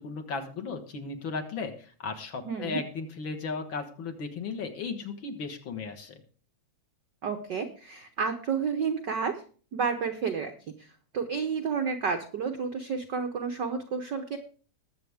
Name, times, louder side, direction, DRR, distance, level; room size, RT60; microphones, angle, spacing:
voice 1, 0.0-6.2, left 4 dB, 50° left, 5 dB, 1.7 m, -36 dB
voice 2, 2.4-2.8 7.2-9.3 9.7-10.5 10.8-10.9 11.1-14.4, right 5 dB, 65° right, 6 dB, 1.0 m, -30 dB
21.0 x 7.8 x 3.5 m, 0.40 s
omnidirectional pair, 3.3 m